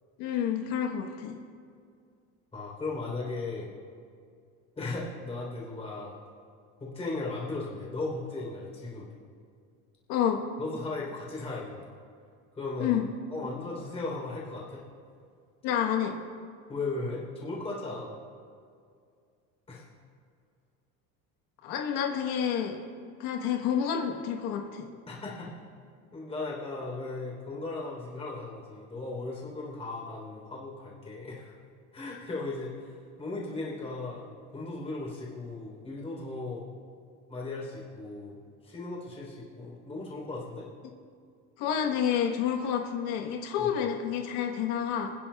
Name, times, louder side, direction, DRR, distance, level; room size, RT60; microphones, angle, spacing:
voice 1, 0.2-1.4 10.1-10.4 12.8-13.0 15.6-16.2 21.6-22.8 23.2-24.9 41.6-45.1, left 8 dB, 90° left, 2 dB, 1.2 m, -29 dB
voice 2, 2.5-3.7 4.7-6.2 6.8-9.1 10.6-11.9 12.5-13.0 13.3-14.8 16.7-18.1 19.7-19.9 25.1-25.6 26.1-31.5 31.9-36.6 37.3-40.7 43.6-43.7, left 3 dB, 20° left, -4 dB, 3.5 m, -37 dB
27.0 x 10.0 x 2.3 m, 2.2 s
cardioid pair, 170°, 33 cm